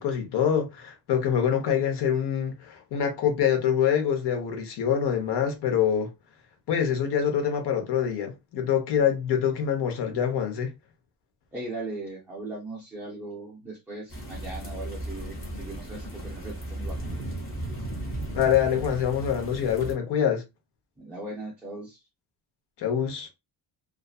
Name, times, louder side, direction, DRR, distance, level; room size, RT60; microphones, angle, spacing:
voice 1, 0.0-6.1 6.7-10.7 18.3-20.4 22.8-23.3, left 8 dB, 65° left, 0.9 m, -25 dB
voice 2, 11.5-17.2 21.0-22.0, right 2 dB, 5° right, 0.3 m, -38 dB
sound 1, 14.1-19.9, right 1 dB, 30° left, 1.1 m, -35 dB
2.6 x 2.4 x 2.3 m
cardioid pair, 175°, 45 cm